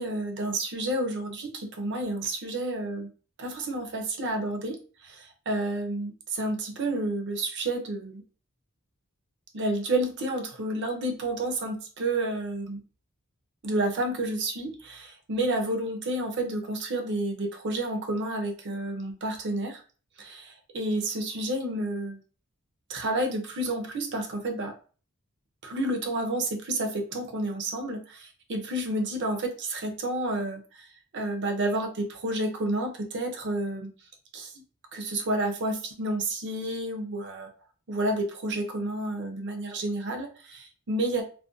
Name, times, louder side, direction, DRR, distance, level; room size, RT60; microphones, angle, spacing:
voice 1, 0.0-3.1 3.4-4.8 5.0-8.2 9.5-12.8 13.6-19.8 20.2-22.2 22.9-24.7 25.6-30.9 31.1-33.9 34.3-34.5 34.9-37.5 37.9-41.2, right 1 dB, 55° right, 3 dB, 0.5 m, -30 dB
2.4 x 2.2 x 2.4 m, 0.38 s
head